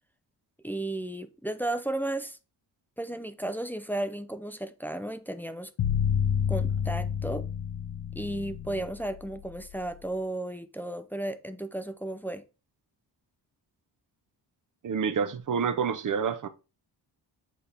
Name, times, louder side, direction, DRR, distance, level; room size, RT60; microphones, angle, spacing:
voice 1, 0.6-2.4 3.0-5.7 6.5-7.5 8.1-12.4, right 1 dB, 5° left, 0.5 m, -34 dB
sound 1, 5.8-9.9, left 8 dB, 65° left, 1.0 m, -29 dB
voice 2, 14.8-16.5, right 6 dB, 45° right, 0.8 m, -28 dB
7.9 x 4.2 x 3.5 m
cardioid pair, 110°, 44 cm